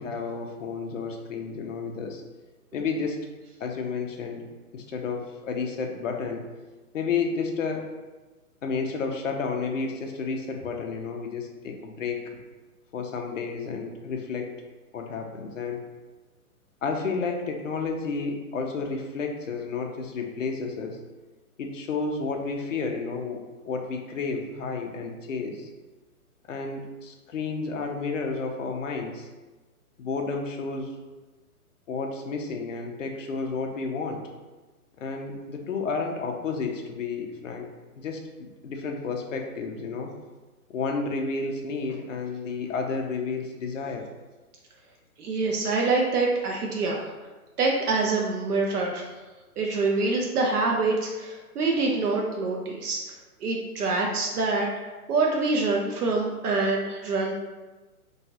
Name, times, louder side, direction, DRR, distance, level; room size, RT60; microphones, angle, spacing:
voice 1, 0.0-2.2 2.7-3.3 3.6-4.5 4.7-6.4 6.9-7.9 8.6-12.2 12.9-14.5 14.9-15.8 16.8-21.0 21.6-25.7 26.5-29.3 30.0-30.9 31.9-34.2 35.0-37.7 38.0-40.1 40.7-44.1, left 4 dB, 55° left, 2 dB, 0.5 m, -31 dB
voice 2, 45.2-47.1 47.6-49.0 49.6-53.0 53.4-54.7 55.1-57.3, right 3 dB, 75° right, -1 dB, 0.6 m, -25 dB
3.0 x 2.3 x 2.7 m, 1.2 s
hypercardioid pair, 170°, 46 cm